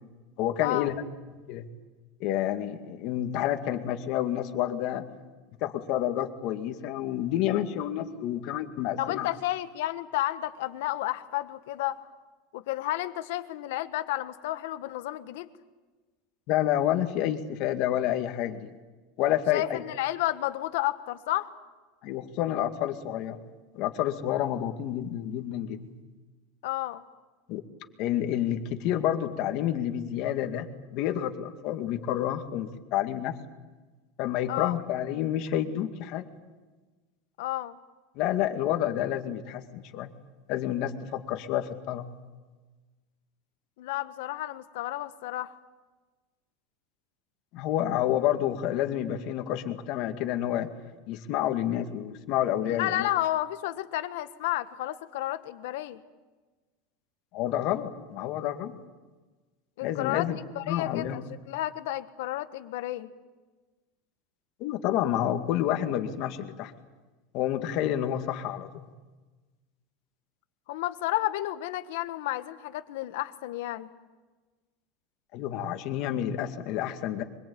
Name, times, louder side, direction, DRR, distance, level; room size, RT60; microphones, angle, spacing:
voice 1, 0.4-0.9 1.5-1.7 2.2-5.0 5.6-9.3 16.5-18.7 19.2-19.8 22.0-23.4 23.7-25.9 27.5-27.6 28.0-33.3 34.2-36.3 38.2-40.1 40.5-42.1 47.5-50.7 51.1-53.1 57.3-58.8 59.8-60.4 60.7-61.3 64.6-66.7 67.3-68.9 75.3-77.2, left 11 dB, 45° left, 6 dB, 2.1 m, -29 dB
voice 2, 9.0-12.0 12.5-15.5 19.5-21.5 26.6-27.0 34.5-34.7 37.4-37.8 43.8-45.5 52.6-56.0 59.8-60.3 60.5-63.1 70.7-73.9, left 15 dB, 70° left, 10 dB, 1.5 m, -31 dB
24.5 x 23.0 x 8.7 m, 1.2 s
supercardioid pair, 165°, 0 cm